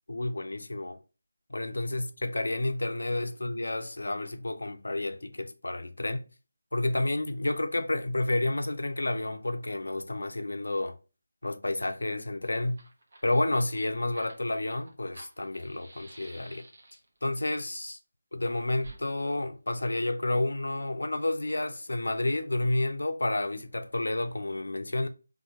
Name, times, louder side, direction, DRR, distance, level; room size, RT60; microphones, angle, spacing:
voice 1, 0.1-1.0 1.5-6.3 6.7-11.0 11.4-12.8 13.2-16.6 17.2-18.0 18.3-25.1, left 2 dB, 70° left, 0.7 m, -30 dB
Fire, 12.3-12.4 12.6-17.2 18.8-19.0, right 2 dB, 55° right, 1.2 m, -51 dB
4.3 x 3.1 x 3.0 m
figure-of-eight pair, 160°, 0 cm